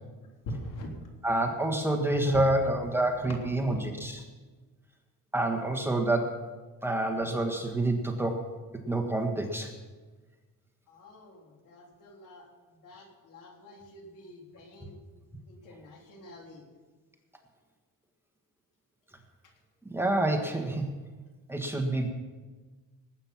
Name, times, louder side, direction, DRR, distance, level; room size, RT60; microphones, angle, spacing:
voice 1, 0.5-0.9 3.2-3.3 10.9-12.5 12.8-15.0 15.5-16.6, left 1 dB, 70° left, 1 dB, 3.7 m, -44 dB
voice 2, 1.2-4.2 5.3-6.4 6.8-8.4 8.9-9.7 19.8-20.9 21.5-22.1, right 1 dB, 5° right, 2 dB, 1.6 m, -28 dB
19.0 x 9.0 x 5.9 m, 1.3 s
cardioid pair, 120°, 34 cm